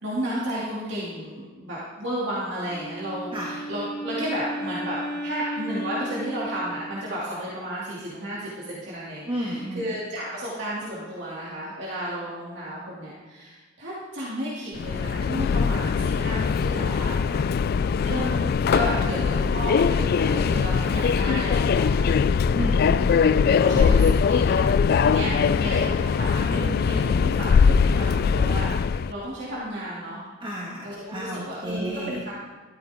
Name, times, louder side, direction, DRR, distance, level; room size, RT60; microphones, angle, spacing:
voice 1, 0.0-5.0 5.2-17.5 18.0-22.2 23.6-25.3 25.6-30.2 30.8-32.3, equal, 65° right, -7 dB, 2.6 m, -33 dB
Wind instrument woodwind instrument, 2.6-7.1, equal, 10° left, 2.8 m, -34 dB
voice 2, 9.3-9.8 17.3-17.4 22.5-23.1 25.2-26.0 30.4-32.2, right 1 dB, 25° right, -4 dB, 1.7 m, -32 dB
Subway metro underground, 14.7-29.1, left 6 dB, 50° left, 0.3 m, -21 dB
14.0 x 13.0 x 3.6 m, 1.3 s
head